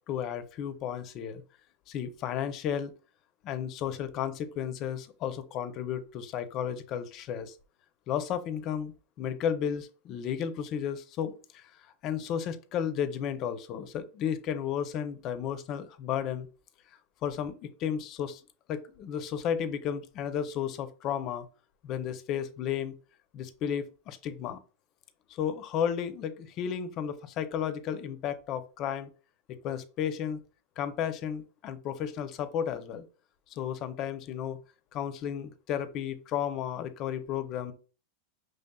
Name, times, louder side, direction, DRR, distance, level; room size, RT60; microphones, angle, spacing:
voice 1, 0.1-1.4 1.9-2.9 3.4-7.6 8.1-11.7 12.0-16.5 17.2-18.4 18.7-21.5 21.8-22.9 23.3-24.6 25.3-29.1 29.5-30.4 30.8-33.0 33.5-34.6 34.9-37.7, left 8 dB, 45° left, 11 dB, 0.5 m, -33 dB
5.3 x 3.3 x 2.3 m, 0.36 s
supercardioid pair, 120°, 0 cm